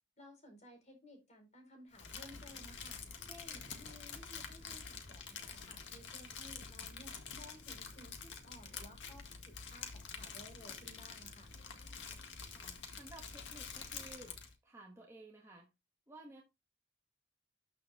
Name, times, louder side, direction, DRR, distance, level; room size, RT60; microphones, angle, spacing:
voice 1, 0.2-11.5, left 1 dB, 40° left, 4.5 m, -57 dB
Crumpling crinkling, 1.9-14.5, left 6 dB, 75° left, 2.0 m, -47 dB
voice 2, 12.5-15.7 16.1-16.4, right 2 dB, 15° right, 1.4 m, -55 dB
13.0 x 6.9 x 2.4 m
head